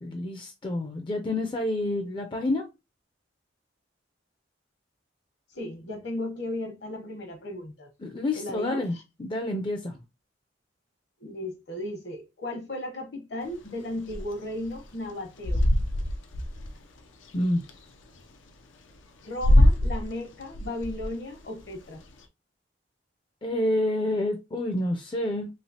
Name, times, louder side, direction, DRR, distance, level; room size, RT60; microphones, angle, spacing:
voice 1, 0.0-2.6 8.0-9.9 17.3-17.6 23.4-25.5, left 1 dB, 25° left, 0.4 m, -28 dB
voice 2, 5.5-7.9 8.4-9.0 11.2-15.6 19.2-22.0, left 1 dB, 60° left, 1.0 m, -35 dB
sound 1, 13.5-17.8 18.3-18.4 18.9-22.2, left 1 dB, 90° left, 0.5 m, -23 dB
3.1 x 2.8 x 2.7 m
head